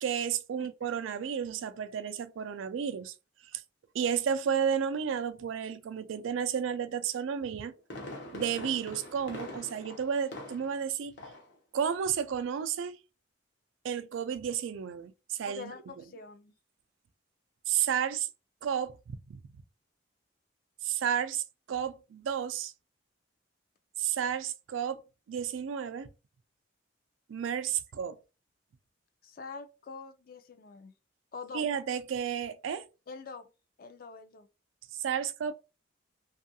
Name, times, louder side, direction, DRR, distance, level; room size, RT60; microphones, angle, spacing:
voice 1, 0.0-3.1 3.5-3.6 3.9-7.7 8.3-11.1 11.7-12.9 13.8-15.6 17.7-18.3 18.6-18.9 19.3-19.4 20.8-22.7 24.0-25.0 25.3-26.1 27.3-28.2 31.5-32.9 35.0-35.5, right 8 dB, 85° right, 0.3 m, -32 dB
voice 2, 0.6-0.9 15.4-16.5 29.2-30.9 31.3-31.6 33.1-33.5 33.8-34.5, left 4 dB, 50° left, 0.4 m, -45 dB
Fireworks, 7.4-10.9 11.2-11.5 11.9-12.0, left 1 dB, 65° left, 0.7 m, -44 dB
2.6 x 2.4 x 2.6 m
head